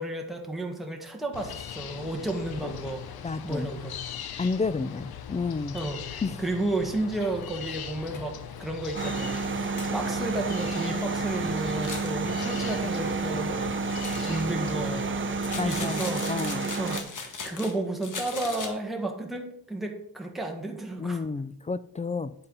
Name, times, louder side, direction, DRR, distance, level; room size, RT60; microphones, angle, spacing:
voice 1, 0.0-3.0 3.4-4.0 5.7-13.7 14.2-15.1 15.6-16.3 16.8-21.2, right 2 dB, ahead, 1.7 m, -32 dB
sound 1, 1.3-15.9, left 9 dB, 70° left, 0.9 m, -40 dB
voice 2, 3.2-3.7 4.4-5.8 6.2-6.4 15.6-16.7 21.0-22.3, left 4 dB, 20° left, 0.4 m, -31 dB
sound 2, 7.4-7.5 8.1-8.2 8.6-8.7 9.1-9.2 9.8-10.2 11.7-12.2 13.9-14.4 15.4-17.8 18.0-18.7, left 4 dB, 50° left, 1.9 m, -38 dB
sound 3, 8.9-17.0, right 4 dB, 30° right, 0.8 m, -30 dB
9.5 x 7.8 x 4.1 m
cardioid pair, 85°, 39 cm